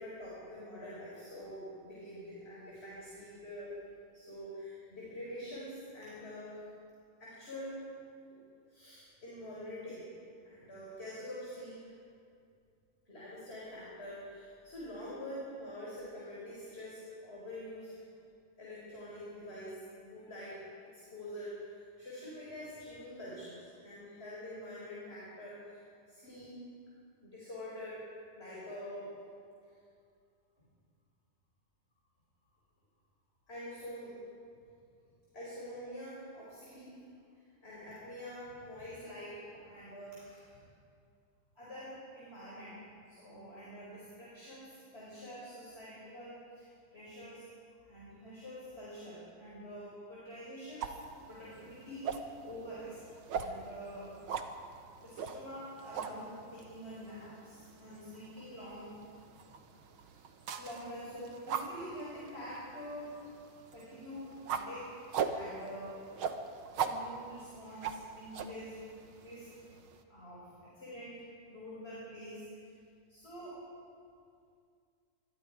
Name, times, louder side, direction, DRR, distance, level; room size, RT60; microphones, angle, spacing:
voice 1, 0.0-3.7 4.1-6.6 7.2-7.8 8.7-10.1 10.4-11.9 13.1-18.0 18.6-26.6 27.2-28.0 28.3-29.1 33.5-34.2 35.3-36.9 37.6-40.6 41.6-42.8 43.1-47.4 47.8-50.9 51.3-53.0 53.3-54.1 55.0-58.9 60.0-63.2 63.7-66.0 66.8-69.5 70.1-71.2 71.5-72.8 73.1-73.6, equal, 15° left, -7 dB, 5.2 m, -46 dB
sound 1, 50.8-70.0, right 6 dB, 70° right, 1.2 m, -42 dB
26.0 x 22.0 x 4.9 m, 2.3 s
omnidirectional pair, 3.9 m